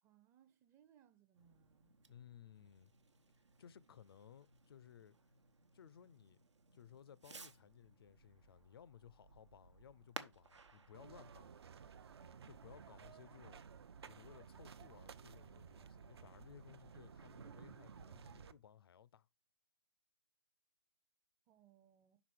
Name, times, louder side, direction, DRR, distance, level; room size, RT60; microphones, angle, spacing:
voice 1, 0.0-1.9 21.5-22.2, right 10 dB, 15° right, 0.6 m, -69 dB
Fireworks, 1.3-12.7, right 4 dB, 75° right, 1.0 m, -59 dB
voice 2, 2.1-2.9 3.6-5.2 5.7-6.4 6.7-11.6 12.4-13.6 14.0-19.3, left 9 dB, 55° left, 0.4 m, -60 dB
sound 1, 10.9-18.5, right 6 dB, 60° right, 0.6 m, -56 dB
6.0 x 4.0 x 6.1 m
figure-of-eight pair, 135°, 15 cm